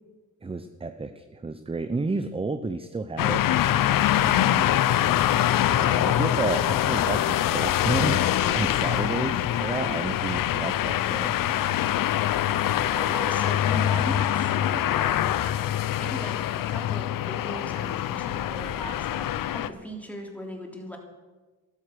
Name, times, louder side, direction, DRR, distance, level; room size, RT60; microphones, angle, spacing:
voice 1, 0.4-3.4 5.7-11.3, right 3 dB, 15° right, 10 dB, 0.7 m, -31 dB
sound 1, 3.2-19.7, left 12 dB, 80° left, 0.7 m, -24 dB
voice 2, 4.2-4.7 6.1-6.4 12.9-15.6 16.0-16.3 16.7-21.0, equal, 5° left, 1 dB, 3.4 m, -38 dB
12.5 x 12.0 x 6.8 m, 1.3 s
cardioid pair, 90°, 33 cm